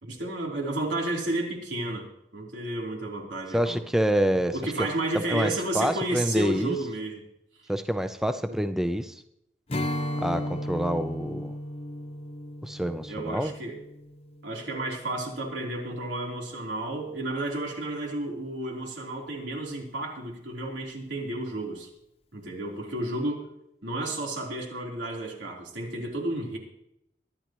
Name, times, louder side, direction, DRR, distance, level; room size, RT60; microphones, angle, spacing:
voice 1, 0.0-2.1 2.3-3.8 4.5-7.2 8.5-8.6 13.1-13.8 14.4-21.9 22.3-23.5 23.8-26.6, right 1 dB, 85° right, -1 dB, 3.7 m, -32 dB
voice 2, 3.5-4.5 5.3-6.8 7.7-9.1 10.2-11.5 12.6-13.5, equal, 5° right, 9 dB, 0.6 m, -27 dB
Strum, 9.7-15.1, left 1 dB, 35° left, 0.9 m, -35 dB
24.0 x 11.0 x 3.1 m, 0.80 s
head